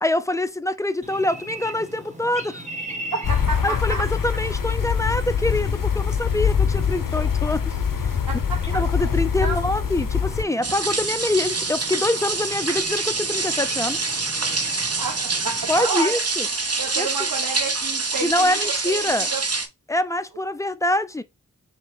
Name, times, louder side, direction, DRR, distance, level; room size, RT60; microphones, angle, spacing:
voice 1, 0.0-2.6 3.6-8.1 8.7-14.0 15.7-16.5 17.0-17.1 18.2-19.3 19.9-21.2, left 1 dB, 10° left, 0.5 m, -25 dB
sound 1, 1.0-15.8, right 1 dB, 20° right, 1.1 m, -40 dB
voice 2, 3.1-4.1 8.3-8.8 9.4-9.6 14.7-16.2 16.8-19.4, right 4 dB, 85° right, 0.9 m, -30 dB
sound 2, 3.2-10.4, left 7 dB, 75° left, 0.6 m, -23 dB
sound 3, 10.6-19.7, right 3 dB, 45° right, 0.8 m, -26 dB
5.7 x 2.2 x 3.5 m
wide cardioid pair, 45°, 33 cm